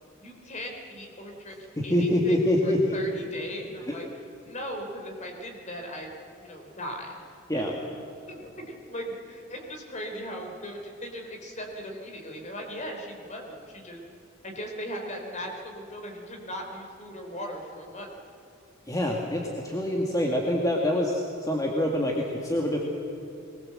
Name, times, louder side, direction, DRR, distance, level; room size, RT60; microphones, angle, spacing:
voice 1, 0.2-1.6 1.8-4.0 4.4-6.1 6.4-7.2 7.5-7.7 8.3-14.0 14.4-18.1, equal, 35° left, 2 dB, 3.9 m, -38 dB
voice 2, 1.8-3.0 3.9-4.0 7.5-7.7 18.9-22.8, left 1 dB, 15° left, -1 dB, 2.0 m, -25 dB
22.5 x 20.0 x 7.7 m, 2.6 s
head